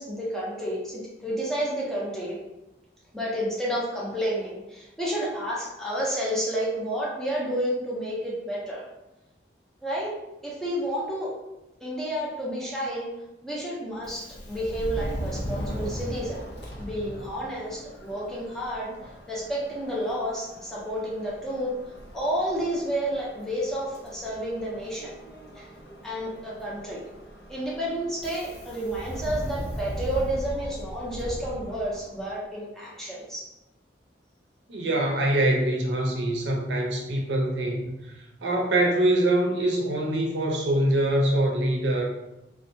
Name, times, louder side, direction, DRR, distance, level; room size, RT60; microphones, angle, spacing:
voice 1, 0.0-2.4 3.1-8.9 9.8-10.1 10.4-11.3 11.8-13.1 13.4-16.5 16.8-21.7 22.1-25.2 25.5-25.7 26.0-27.0 27.5-33.5, equal, 5° left, -6 dB, 0.5 m, -30 dB
Subway metro underground, 14.0-32.3, equal, 70° left, 0.5 m, -38 dB
voice 2, 34.7-42.1, right 1 dB, 80° right, 0 dB, 0.5 m, -24 dB
2.6 x 2.1 x 2.6 m, 0.96 s
head